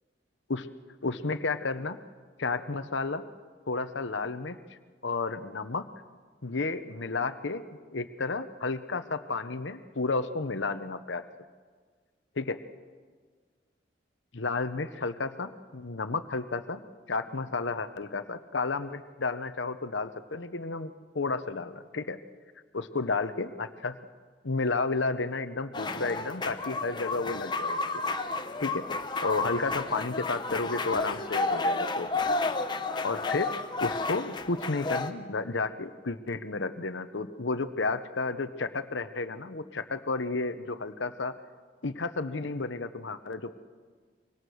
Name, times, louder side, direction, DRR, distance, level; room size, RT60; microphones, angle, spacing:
voice 1, 1.0-2.0 2.4-3.2 3.7-4.6 5.0-5.9 6.4-7.6 7.9-11.2 12.4-12.6 14.3-16.8 17.1-22.2 22.7-24.0 24.4-27.8 28.6-28.9 29.2-32.4 33.0-41.3 41.8-43.5, left 3 dB, 75° left, 10 dB, 1.0 m, -32 dB
sound 1, 25.7-35.1, left 3 dB, 25° left, 0.9 m, -31 dB
24.5 x 24.0 x 6.4 m, 1.5 s
head